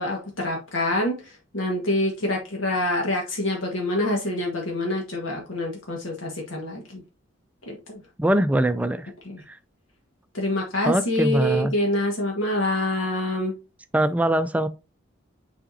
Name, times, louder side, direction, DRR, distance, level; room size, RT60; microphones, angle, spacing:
voice 1, 0.0-7.0 7.7-8.0 9.2-9.4 10.3-13.5, left 1 dB, 85° left, 1.5 m, -26 dB
voice 2, 8.2-9.1 9.5-9.6 10.8-11.7 13.9-14.7, right 1 dB, 10° right, 0.3 m, -22 dB
7.2 x 5.0 x 2.6 m
head